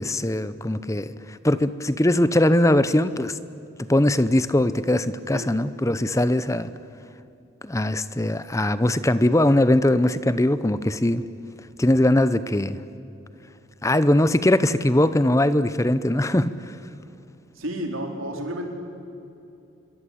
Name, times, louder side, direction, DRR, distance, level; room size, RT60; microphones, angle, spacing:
voice 1, 0.0-3.4 3.9-6.7 7.6-11.2 11.8-12.8 13.8-16.5, left 1 dB, 15° left, 0.7 m, -21 dB
voice 2, 17.6-18.7, equal, 90° right, 4.3 m, -31 dB
27.0 x 23.0 x 8.5 m
head